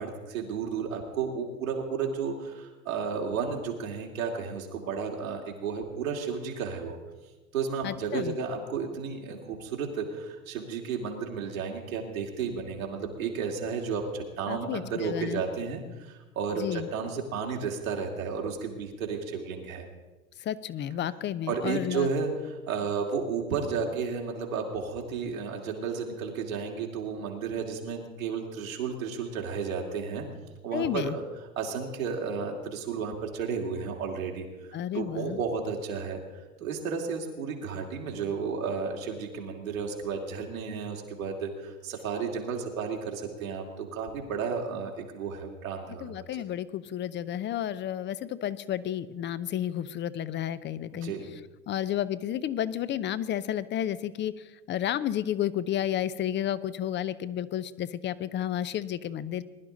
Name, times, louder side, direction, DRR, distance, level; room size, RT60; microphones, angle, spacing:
voice 1, 0.0-7.0 7.5-19.9 21.5-30.3 30.6-31.2 31.6-34.5 34.9-36.2 36.6-46.4 50.9-51.3, right 5 dB, 80° right, 1 dB, 2.6 m, -33 dB
voice 2, 7.8-8.4 14.5-15.4 16.6-16.9 20.4-22.1 30.7-31.2 34.7-35.4 46.0-51.1 51.7-54.3 54.7-59.4, left 11 dB, 25° left, 16 dB, 0.6 m, -31 dB
20.5 x 11.5 x 3.9 m, 1.2 s
hypercardioid pair, 85°, 41 cm